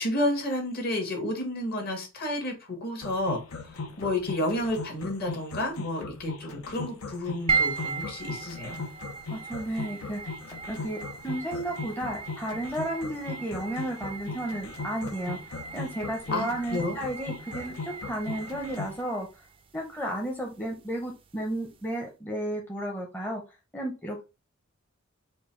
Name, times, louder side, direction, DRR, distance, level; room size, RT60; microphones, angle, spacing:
voice 1, 0.0-8.8 16.3-16.9, left 1 dB, 45° left, 2 dB, 1.5 m, -31 dB
sound 1, 3.0-19.0, left 3 dB, 80° left, 0.8 m, -38 dB
sound 2, 7.5-22.0, right 5 dB, 25° right, 0.4 m, -37 dB
voice 2, 9.3-10.2 10.7-15.4 15.7-19.3 19.7-23.4 23.7-24.2, right 1 dB, 10° left, -1 dB, 0.7 m, -33 dB
4.4 x 2.3 x 4.4 m, 0.29 s
head